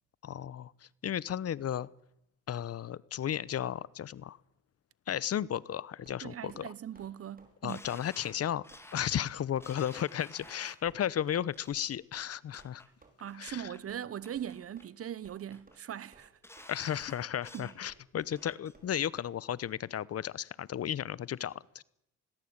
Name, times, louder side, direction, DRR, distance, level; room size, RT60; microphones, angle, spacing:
voice 1, 0.2-1.9 2.5-4.4 5.1-6.7 7.6-8.6 8.9-12.8 13.4-13.7 16.7-21.8, left 10 dB, 55° left, 0.9 m, -34 dB
sound 1, 6.0-6.6 6.9-7.1 7.4-7.6 7.8-8.0 8.3-8.4 8.7-8.8 9.1-9.3 9.6-9.7 10.0-10.1 10.4-10.6 10.8-11.0 11.3-11.4 11.7-11.8 12.1-12.3 12.6-12.7 13.0-13.1 13.5-13.6 13.9-14.1 14.3-14.5 14.8-14.9 15.2-15.4 15.7-15.8 16.1-16.7 17.0-17.2 17.4-17.5 17.9-18.0 18.3-18.4 18.7-18.9 19.2-19.3 19.6-19.7, right 3 dB, 30° right, 5.4 m, -59 dB
voice 2, 6.2-7.8 13.2-16.3 17.5-17.7, right 10 dB, 50° right, 0.9 m, -40 dB
sound 2, 7.7-10.9 11.5-11.9 12.3-12.9 13.3-13.8 14.2-14.9 15.2-15.8 16.2-17.8 18.2-18.7 19.1-19.2, left 1 dB, 10° left, 3.1 m, -53 dB
21.0 x 18.5 x 8.8 m
cardioid pair, 90°, 30 cm